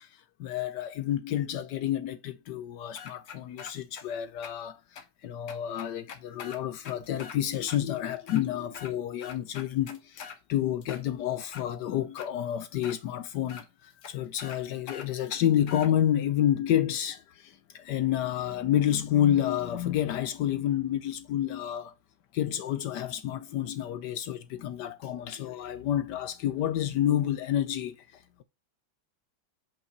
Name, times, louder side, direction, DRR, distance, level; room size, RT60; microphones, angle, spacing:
voice 1, 0.0-21.9 22.3-28.4, left 11 dB, 70° left, 1.1 m, -29 dB
sound 1, 3.0-4.0 4.4-4.5 5.0-5.1 5.5-7.4 7.7-7.8 8.2-8.9 9.2-10.4 10.8-11.7 12.2-12.3 12.8-13.0 13.5-13.6 14.0-14.1 14.4-14.6 14.9-15.9, left 6 dB, 50° left, 1.1 m, -43 dB
5.6 x 5.5 x 5.9 m
omnidirectional pair, 2.1 m